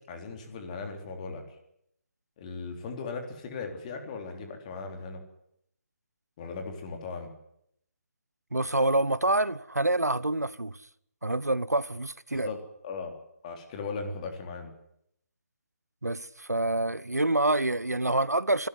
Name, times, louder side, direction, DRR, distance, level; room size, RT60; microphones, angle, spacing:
voice 1, 0.1-1.4 2.4-5.2 6.4-7.3 12.4-13.2 13.4-14.7, left 4 dB, 30° left, 3.6 m, -38 dB
voice 2, 8.5-10.8 11.2-12.5 16.0-18.7, right 2 dB, 90° right, 0.9 m, -27 dB
23.5 x 13.0 x 9.6 m
figure-of-eight pair, 145°, 8 cm